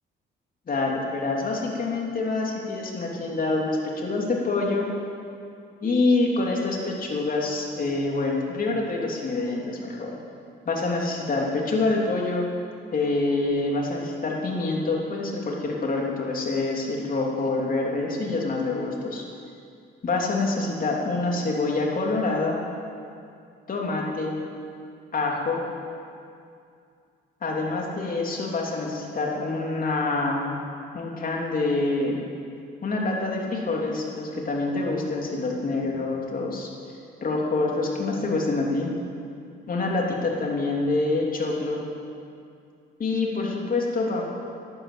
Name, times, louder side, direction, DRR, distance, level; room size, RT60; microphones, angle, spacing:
voice 1, 0.7-4.9 5.8-10.2 10.6-12.5 12.9-19.2 20.0-22.6 23.7-24.4 25.1-25.6 27.4-30.5 30.9-32.2 32.8-36.7 37.2-38.9 39.7-41.8 43.0-44.2, left 3 dB, 45° left, -1 dB, 3.2 m, -26 dB
12.0 x 11.5 x 8.7 m, 2.4 s
cardioid pair, 90°, 20 cm